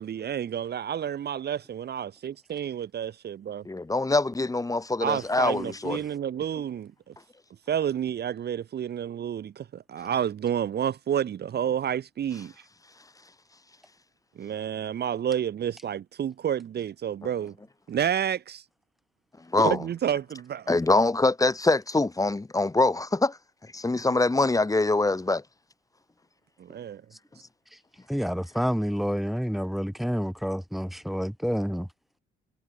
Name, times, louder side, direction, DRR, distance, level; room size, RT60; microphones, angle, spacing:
voice 1, 0.0-3.6 5.0-6.9 7.7-12.5 14.4-17.5 17.9-18.6 19.6-20.8 26.6-27.0, right 9 dB, 55° right, 1.2 m, -30 dB
voice 2, 3.7-6.0 19.5-19.8 20.7-23.4 23.7-25.4, left 2 dB, 15° left, 3.6 m, -24 dB
voice 3, 28.1-31.9, equal, ahead, 4.8 m, -28 dB
cardioid pair, 90°, 20 cm